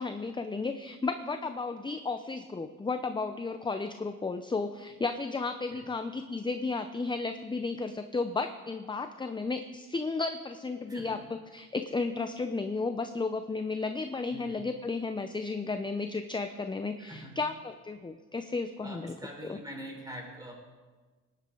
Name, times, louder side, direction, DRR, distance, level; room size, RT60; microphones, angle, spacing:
voice 1, 0.0-19.2 19.5-19.6, left 3 dB, 15° left, 8 dB, 0.6 m, -33 dB
voice 2, 17.0-17.4 18.8-20.5, equal, 10° right, -1 dB, 4.8 m, -44 dB
18.5 x 11.0 x 3.9 m, 1.3 s
cardioid pair, 90°, 30 cm